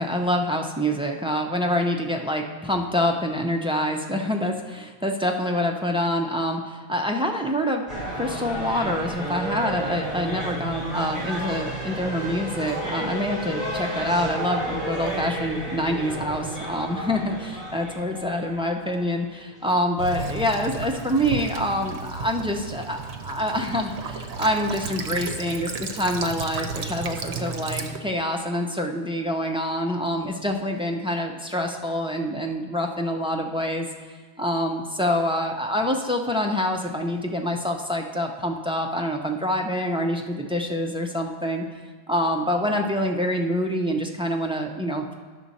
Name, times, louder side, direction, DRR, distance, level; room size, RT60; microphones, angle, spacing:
voice 1, 0.0-7.9 8.1-33.9 34.4-41.6 42.1-45.1, equal, 10° right, 2 dB, 0.3 m, -26 dB
sound 1, 7.9-19.4 19.6-19.7, right 1 dB, 25° right, 3.0 m, -32 dB
Child speech kid speaking / Bird vocalization bird call bird song / Stream, 20.0-28.0, right 4 dB, 75° right, 0.9 m, -33 dB
9.8 x 6.1 x 4.1 m, 1.5 s
omnidirectional pair, 1.1 m